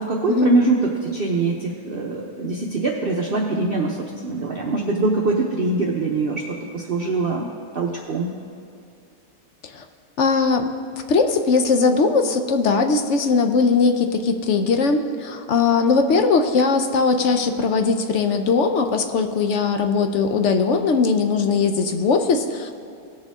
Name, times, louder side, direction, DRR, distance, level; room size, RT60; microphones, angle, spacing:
voice 1, 0.0-4.0 4.2-7.5 7.7-8.3, right 2 dB, 45° right, 0 dB, 0.9 m, -23 dB
voice 2, 10.2-10.7 11.1-22.7, left 4 dB, 60° left, 6 dB, 0.8 m, -19 dB
18.0 x 6.7 x 3.6 m, 2.6 s
omnidirectional pair, 1.6 m